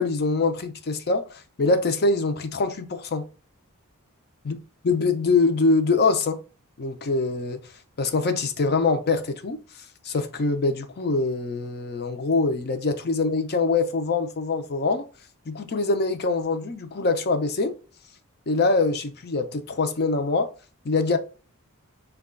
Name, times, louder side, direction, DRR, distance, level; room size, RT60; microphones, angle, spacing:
voice 1, 0.0-3.2 4.4-4.6 4.8-6.4 6.8-7.6 8.0-9.6 10.0-15.1 15.5-17.8 18.5-20.5 20.8-21.2, left 3 dB, 45° left, 0.6 m, -24 dB
4.7 x 2.3 x 3.6 m
head